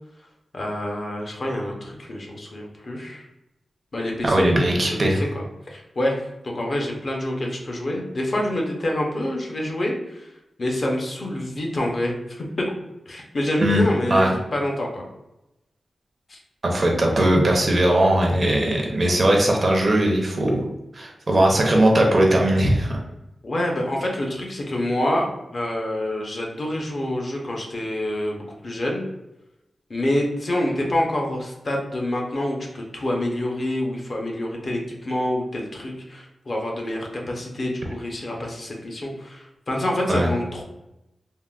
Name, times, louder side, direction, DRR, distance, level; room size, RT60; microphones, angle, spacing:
voice 1, 0.5-3.3 3.9-12.7 13.1-15.0 16.3-16.4 23.4-29.1 29.9-40.6, left 1 dB, 40° left, 0 dB, 0.5 m, -27 dB
voice 2, 4.2-5.2 13.6-13.8 14.1-14.3 16.6-20.6 20.9-23.0 40.1-40.3, right 1 dB, 40° right, 0 dB, 0.5 m, -19 dB
3.5 x 2.1 x 2.3 m, 0.92 s
wide cardioid pair, 165°, 0 cm